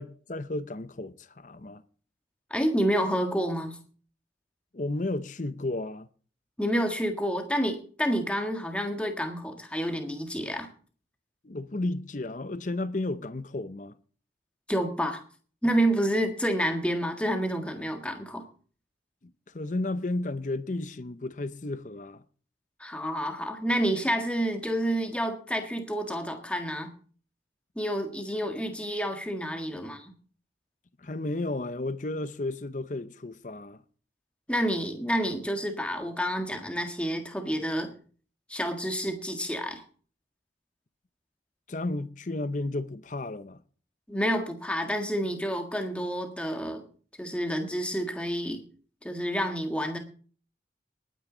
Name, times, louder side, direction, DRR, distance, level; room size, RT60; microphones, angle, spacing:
voice 1, 0.0-1.8 4.7-6.1 11.4-14.0 19.2-22.2 31.0-33.8 41.7-43.6, left 2 dB, 45° left, 0.7 m, -33 dB
voice 2, 2.5-3.8 6.6-10.7 14.7-15.2 15.6-18.4 22.8-26.9 27.7-30.0 34.5-37.9 38.5-39.8 44.1-46.8 47.2-48.6 49.0-50.0, equal, 5° left, 1.6 m, -29 dB
19.5 x 9.4 x 3.9 m
head